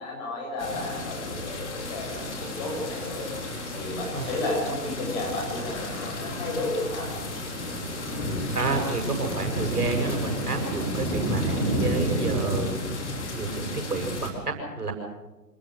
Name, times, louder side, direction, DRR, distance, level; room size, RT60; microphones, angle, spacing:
voice 1, 0.0-3.3 3.8-7.1, left 2 dB, 25° left, -1 dB, 8.0 m, -32 dB
sound 1, 0.6-14.3, left 1 dB, 45° left, 5.0 m, -32 dB
sound 2, 1.7-12.6, right 3 dB, 20° right, 3.5 m, -36 dB
voice 2, 8.3-12.9 13.3-14.9, right 4 dB, 65° right, 3 dB, 7.4 m, -30 dB
27.0 x 20.0 x 6.7 m, 1.1 s
figure-of-eight pair, 140°, 50 cm